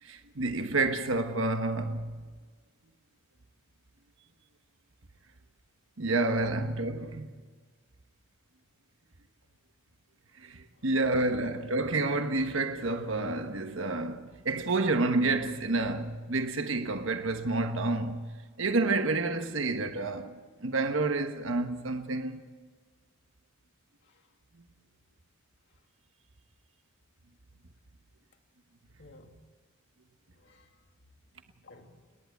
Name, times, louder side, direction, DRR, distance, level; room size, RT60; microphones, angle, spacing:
voice 1, 0.0-2.2 6.0-7.4 10.4-22.4, right 2 dB, 65° right, 1.3 m, -29 dB
voice 2, 10.8-11.4 24.0-24.2 29.0-29.4 30.4-30.7 31.6-32.0, left 3 dB, 60° left, 2.5 m, -52 dB
29.0 x 11.0 x 8.3 m
head